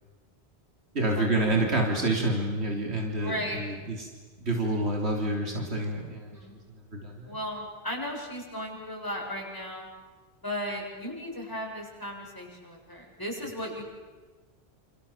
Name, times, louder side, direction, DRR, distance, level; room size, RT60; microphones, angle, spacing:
voice 1, 0.9-4.1 4.4-6.3 6.9-7.4, right 2 dB, 90° right, 1 dB, 3.6 m, -28 dB
voice 2, 3.2-3.7 6.3-6.6 7.2-9.9 10.4-13.8, equal, 20° left, -2 dB, 7.9 m, -36 dB
29.0 x 28.0 x 7.2 m, 1.4 s
omnidirectional pair, 1.1 m